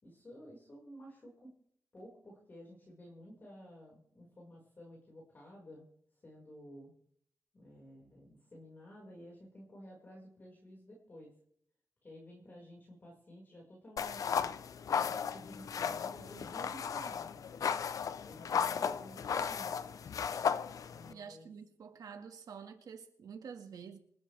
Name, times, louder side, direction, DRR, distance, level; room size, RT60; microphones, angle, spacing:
voice 1, 0.0-1.5 1.9-5.9 6.2-6.9 7.5-11.3 12.0-14.6 14.9-17.6 18.2-20.1 20.9-21.5, equal, 30° left, 5.2 m, -53 dB
sound 1, 14.0-21.1, left 7 dB, 65° left, 0.7 m, -35 dB
voice 2, 18.5-18.9 21.1-24.0, right 6 dB, 75° right, 1.9 m, -49 dB
27.5 x 12.5 x 3.4 m
wide cardioid pair, 150°, 6 cm